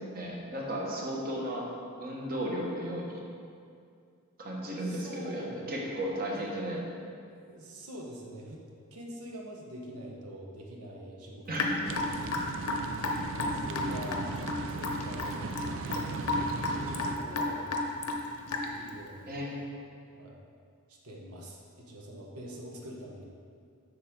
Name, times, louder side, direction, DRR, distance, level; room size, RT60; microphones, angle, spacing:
voice 1, 0.1-1.7 2.0-3.2 4.4-6.8 11.5-11.9 19.3-19.5, equal, 40° right, -2 dB, 1.2 m, -34 dB
voice 2, 4.8-5.6 6.4-6.5 7.3-8.6 8.9-12.0 12.8-12.9 13.3-14.2 14.7-15.5 15.8-17.7 18.6-19.4 20.1-20.4 21.0-23.3, equal, 80° right, -1 dB, 1.2 m, -44 dB
Raindrop / Drip, 11.5-18.9, left 3 dB, 85° left, 0.8 m, -32 dB
sound 1, 11.8-17.2, right 4 dB, 60° right, 0.4 m, -37 dB
7.4 x 6.6 x 3.7 m, 2.3 s
head